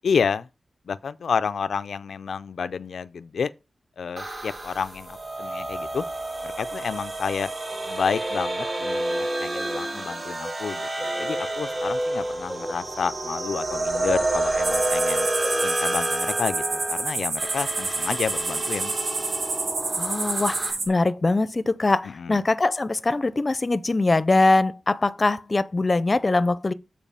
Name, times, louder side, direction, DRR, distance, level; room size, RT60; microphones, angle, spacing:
voice 1, 0.0-0.5 0.9-3.5 4.0-6.1 6.4-7.5 7.9-15.3 15.6-18.9 22.2-22.4, left 6 dB, 80° left, 0.4 m, -30 dB
sound 1, 4.2-20.7, right 2 dB, 40° right, 2.0 m, -30 dB
sound 2, 7.7-16.4, equal, 10° right, 1.0 m, -32 dB
sound 3, 14.6-20.9, right 3 dB, 75° right, 2.5 m, -28 dB
voice 2, 20.0-26.7, left 2 dB, 35° left, 0.6 m, -22 dB
7.2 x 4.7 x 5.6 m
wide cardioid pair, 80°, 0 cm